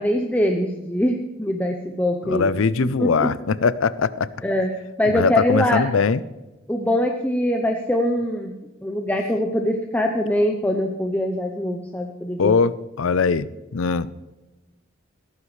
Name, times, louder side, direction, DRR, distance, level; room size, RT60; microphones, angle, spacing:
voice 1, 0.0-2.5 2.8-3.3 4.4-4.7 5.0-5.8 6.7-8.5 8.8-12.5, left 1 dB, 10° left, 2 dB, 0.7 m, -23 dB
voice 2, 2.2-4.3 5.0-6.2 12.4-13.5 13.7-14.1, left 5 dB, 75° left, 17 dB, 0.5 m, -21 dB
16.5 x 14.0 x 3.3 m, 1.1 s
head